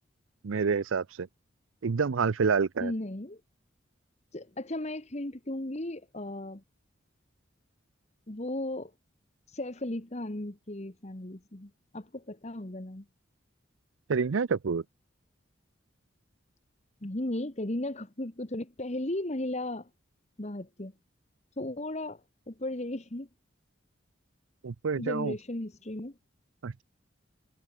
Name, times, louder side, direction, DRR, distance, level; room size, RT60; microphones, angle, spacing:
voice 1, 0.4-1.3 1.8-2.9 14.1-14.8 24.6-25.3 26.6-26.8, right 5 dB, 85° right, 0.6 m, -28 dB
voice 2, 2.8-3.4 4.3-6.6 8.3-8.9 9.5-13.0 17.0-19.9 20.4-20.9 21.6-22.2 22.5-23.3 25.0-26.1, left 1 dB, 35° left, 1.5 m, -35 dB
head